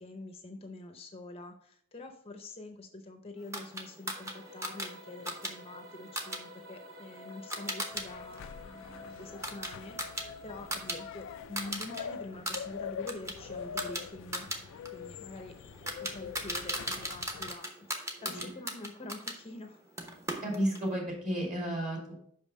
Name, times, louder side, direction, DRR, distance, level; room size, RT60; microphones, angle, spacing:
voice 1, 0.0-14.5 14.9-15.5 16.0-19.8, left 2 dB, 30° left, 5 dB, 0.6 m, -46 dB
sound 1, 3.5-8.1 8.4-11.0 11.3-12.0 12.3-19.4 20.0-20.9, right 1 dB, 15° right, 0.9 m, -39 dB
sound 2, 4.1-11.4, left 2 dB, 70° right, 1.1 m, -50 dB
sound 3, 7.9-17.5, left 7 dB, 65° left, 0.3 m, -44 dB
voice 2, 20.4-22.1, equal, 35° right, -1 dB, 2.7 m, -33 dB
5.5 x 5.5 x 5.3 m, 0.63 s
head